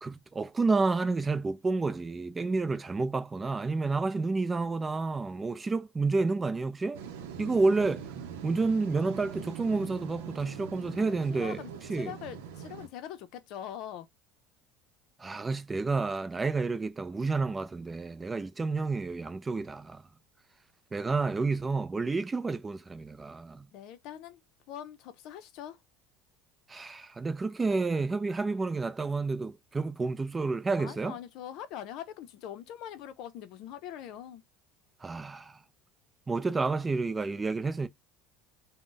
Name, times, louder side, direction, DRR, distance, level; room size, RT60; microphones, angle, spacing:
voice 1, 0.0-7.0 7.4-8.1 8.4-11.6 11.9-12.1 15.2-20.0 20.9-23.7 26.7-31.2 35.0-35.6 36.3-37.9, right 3 dB, 20° right, 0.4 m, -30 dB
sound 1, 6.9-12.9, right 8 dB, 85° right, 0.6 m, -43 dB
voice 2, 11.0-14.1 23.7-24.4 24.7-25.8 30.8-34.4, left 10 dB, 65° left, 0.5 m, -43 dB
2.5 x 2.1 x 3.7 m
supercardioid pair, 95°, 0 cm